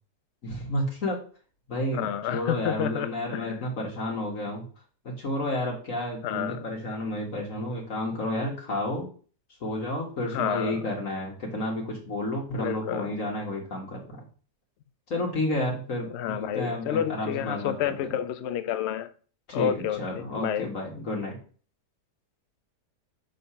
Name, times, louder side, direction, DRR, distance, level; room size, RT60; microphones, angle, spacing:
voice 1, 0.4-1.2 1.7-4.7 5.2-9.1 9.6-14.2 15.1-18.1 19.5-21.4, left 1 dB, 55° left, 1.8 m, -31 dB
voice 2, 1.9-3.6 6.2-6.7 10.3-10.8 12.5-13.1 16.1-19.1 19.5-20.7, left 10 dB, 85° left, 0.6 m, -30 dB
6.6 x 3.9 x 5.6 m
omnidirectional pair, 1.7 m